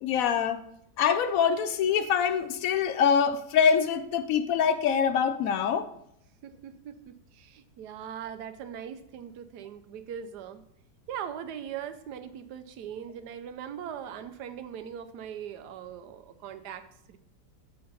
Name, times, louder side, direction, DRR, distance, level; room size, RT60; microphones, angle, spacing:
voice 1, 0.0-0.6 1.0-5.9, left 7 dB, 70° left, 10 dB, 0.8 m, -24 dB
voice 2, 6.4-10.6 11.1-17.2, right 9 dB, 75° right, 10 dB, 1.2 m, -40 dB
7.9 x 3.8 x 5.4 m, 0.75 s
omnidirectional pair, 1.8 m